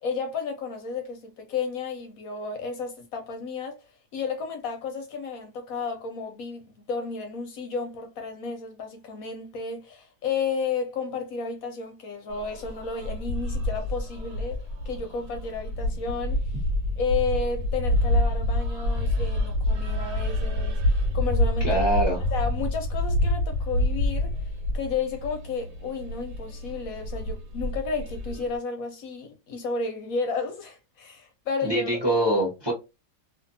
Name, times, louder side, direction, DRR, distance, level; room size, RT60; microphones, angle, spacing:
voice 1, 0.0-16.4 17.0-21.7 22.3-32.0, left 4 dB, 70° left, 0.9 m, -32 dB
sound 1, 12.3-28.6, left 1 dB, 85° right, 1.4 m, -27 dB
voice 2, 21.6-22.2 31.6-32.7, right 1 dB, 25° right, 0.6 m, -24 dB
2.6 x 2.6 x 2.5 m
omnidirectional pair, 1.7 m